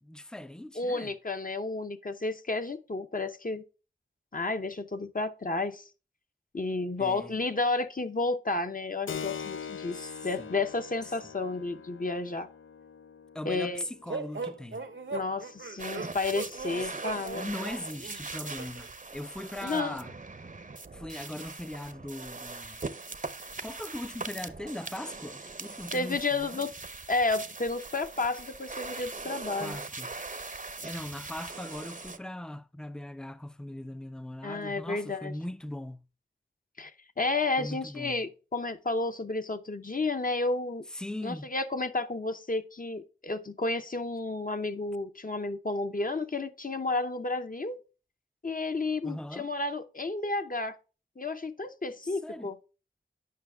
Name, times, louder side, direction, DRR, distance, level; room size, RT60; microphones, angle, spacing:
voice 1, 0.0-1.1 7.0-7.4 9.9-10.6 13.3-14.9 16.8-20.1 20.9-22.8 23.6-26.6 29.6-30.1 30.6-36.0 37.6-38.2 40.9-41.5 49.0-49.5 52.0-52.5, left 1 dB, 5° left, 0.4 m, -40 dB
voice 2, 0.7-3.6 4.3-5.9 6.5-12.5 13.4-13.8 15.1-17.5 19.6-20.0 25.9-26.7 27.1-29.8 34.4-35.3 36.8-40.8 41.2-47.8 48.4-50.8 51.2-52.6, left 3 dB, 40° left, 0.7 m, -31 dB
Keyboard (musical), 9.1-17.3, left 7 dB, 75° left, 0.4 m, -44 dB
sound 1, 14.1-18.9, right 4 dB, 70° right, 0.8 m, -39 dB
sound 2, 15.8-32.2, right 3 dB, 40° right, 0.7 m, -41 dB
9.5 x 5.7 x 2.3 m
wide cardioid pair, 45°, 21 cm